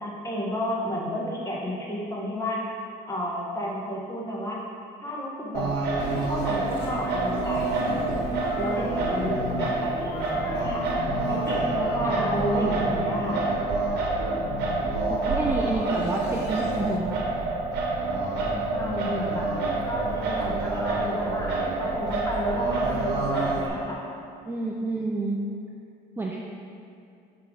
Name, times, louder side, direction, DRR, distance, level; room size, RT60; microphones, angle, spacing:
voice 1, 0.0-2.6 3.1-4.6 5.0-5.9 6.3-8.2 8.6-13.4 18.7-19.5 19.8-24.0, equal, 20° left, -3 dB, 1.2 m, -31 dB
Singing, 5.5-23.7, right 3 dB, 80° right, 1.0 m, -27 dB
sound 1, 6.0-17.0, left 5 dB, 80° left, 0.5 m, -37 dB
voice 2, 12.0-13.0 15.1-17.6 24.5-25.4 26.2-26.4, right 2 dB, 10° right, -2 dB, 0.4 m, -30 dB
5.7 x 4.7 x 3.8 m, 2.5 s
cardioid pair, 110°, 17 cm